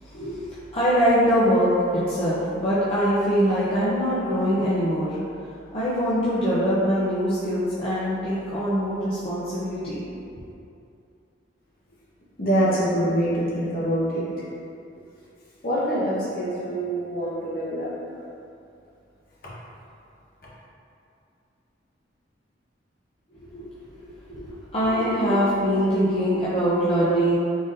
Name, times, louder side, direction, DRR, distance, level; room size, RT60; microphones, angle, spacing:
voice 1, 0.1-5.2 5.7-10.0 23.5-24.0 24.3-27.3, equal, 30° left, -11 dB, 0.6 m, -23 dB
voice 2, 12.4-14.2 15.6-17.9, equal, 50° left, -7 dB, 1.0 m, -24 dB
3.9 x 3.8 x 2.5 m, 2.6 s
head